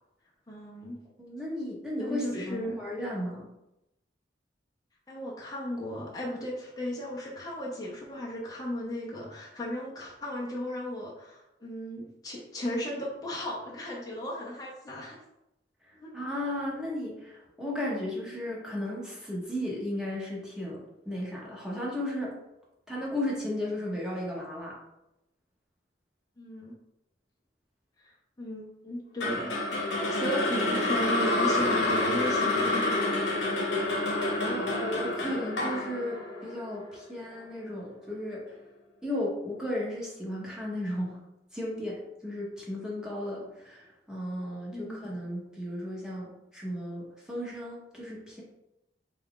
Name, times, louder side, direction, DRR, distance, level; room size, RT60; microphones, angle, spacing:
voice 1, 0.5-1.0 2.0-2.7 5.1-15.2 16.0-16.1 26.4-26.7 28.0-28.1 28.4-33.0 44.4-44.5 44.7-45.1, left 1 dB, 20° left, -5 dB, 0.7 m, -36 dB
voice 2, 1.2-3.5 16.1-22.3 22.9-24.8 34.4-38.5 39.0-41.2 41.5-48.4, left 1 dB, 5° right, -5 dB, 0.9 m, -35 dB
sound 1, 29.2-37.4, left 2 dB, 75° left, 0.9 m, -28 dB
4.1 x 2.4 x 3.6 m, 0.89 s
head